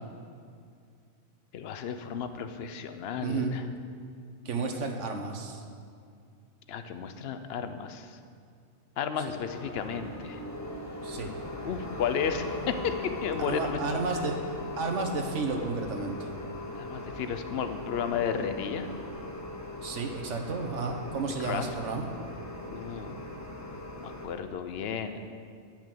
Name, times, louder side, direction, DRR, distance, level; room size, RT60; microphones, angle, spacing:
voice 1, 1.5-3.6 6.7-8.2 9.0-10.4 11.6-13.8 14.1-14.2 16.7-18.9 21.4-21.7 22.7-23.2 24.0-25.3, left 7 dB, 60° left, 9 dB, 0.8 m, -33 dB
voice 2, 3.2-3.5 4.4-5.6 11.0-11.3 13.4-14.4 14.8-16.3 19.8-22.1, right 4 dB, 65° right, 4 dB, 1.3 m, -32 dB
sound 1, 9.3-24.3, left 1 dB, 15° left, 0.8 m, -39 dB
10.5 x 5.9 x 7.5 m, 2.3 s
omnidirectional pair, 1.4 m